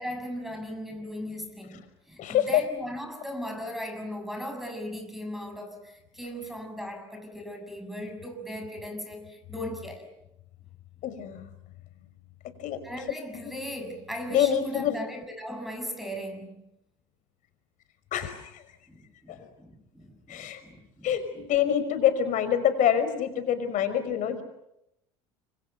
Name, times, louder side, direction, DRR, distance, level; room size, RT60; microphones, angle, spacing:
voice 1, 0.0-10.1 12.8-16.6 18.9-21.1 21.4-21.5, equal, ahead, 6.8 m, -38 dB
voice 2, 2.2-2.6 11.0-11.5 12.6-12.8 13.3-13.6 14.3-15.0 18.1-18.6 19.3-19.5 20.3-20.6 21.0-24.4, left 9 dB, 55° left, 5.4 m, -26 dB
27.0 x 24.5 x 8.1 m
hypercardioid pair, 80°, 15 cm